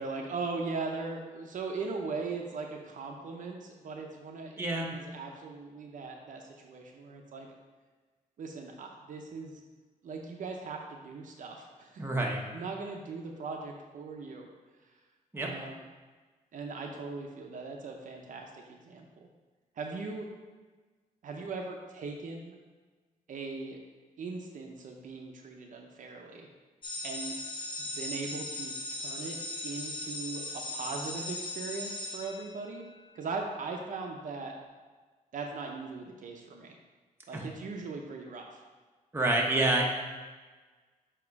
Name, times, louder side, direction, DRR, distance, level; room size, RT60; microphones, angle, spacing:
voice 1, 0.0-7.5 8.4-9.6 10.0-12.0 12.5-14.5 15.4-15.8 16.5-19.3 19.8-20.3 21.2-22.6 23.3-23.8 24.2-26.5 27.0-27.3 27.8-29.4 29.6-32.8 33.1-34.5 35.3-36.7 37.3-38.6, right 4 dB, 65° right, 2 dB, 0.7 m, -39 dB
voice 2, 4.6-4.9 12.0-12.4 15.3-15.5 37.3-37.5 39.1-39.8, right 2 dB, 15° right, -1 dB, 0.9 m, -28 dB
sound 1, 26.8-33.0, left 2 dB, 35° left, 0.8 m, -38 dB
7.2 x 2.9 x 4.7 m, 1.3 s
cardioid pair, 110°, 14 cm